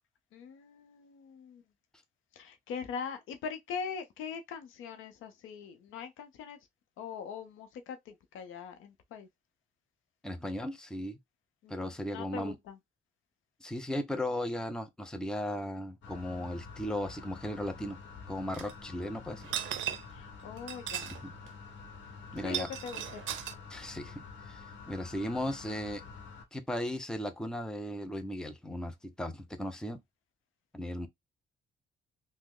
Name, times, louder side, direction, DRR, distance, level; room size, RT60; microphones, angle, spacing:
voice 1, 0.3-1.6 2.4-6.6 7.0-9.3 11.6-12.8 20.1-21.1 22.4-23.0, left 6 dB, 85° left, 0.7 m, -42 dB
voice 2, 10.2-11.2 11.7-12.6 13.6-18.0 18.3-19.5 21.1-21.3 22.3-22.7 23.7-26.0 26.5-30.0 30.7-31.1, left 1 dB, 5° left, 0.6 m, -36 dB
sound 1, 16.0-26.5, left 5 dB, 65° left, 1.0 m, -48 dB
sound 2, 18.5-18.7 19.4-20.2 20.6-21.2 21.5-21.6 22.4-23.5, right 11 dB, 75° right, 0.5 m, -37 dB
3.0 x 2.1 x 3.6 m
cardioid pair, 90°, 20 cm